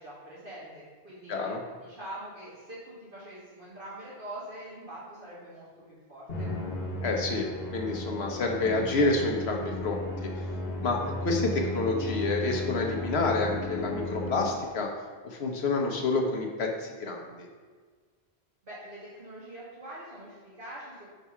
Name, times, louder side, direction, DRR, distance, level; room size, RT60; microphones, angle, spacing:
voice 1, 0.0-1.5 1.8-6.5 18.6-21.1, right 1 dB, 55° right, -8 dB, 1.8 m, -44 dB
voice 2, 1.3-1.6 7.0-10.3 10.8-14.9 15.2-17.5, left 3 dB, 80° left, 2 dB, 1.1 m, -28 dB
Musical instrument, 6.3-14.8, left 1 dB, 65° left, 1.4 m, -35 dB
4.7 x 4.0 x 5.6 m, 1.5 s
omnidirectional pair, 1.1 m